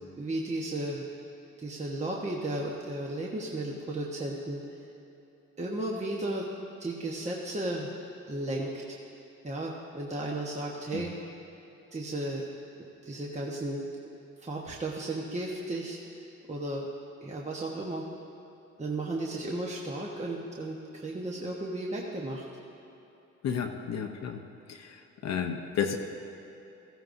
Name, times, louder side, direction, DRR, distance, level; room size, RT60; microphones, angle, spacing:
voice 1, 0.2-1.1 1.6-4.6 5.6-6.5 6.8-7.9 8.3-9.0 9.4-11.1 11.9-12.4 13.0-13.8 14.4-16.0 16.5-16.9 17.2-18.0 18.8-22.4, right 2 dB, 25° right, -2 dB, 1.1 m, -34 dB
voice 2, 23.4-24.4 24.7-26.0, left 7 dB, 60° left, 3 dB, 0.9 m, -32 dB
15.0 x 15.0 x 2.7 m, 3.0 s
cardioid pair, 90°, 30 cm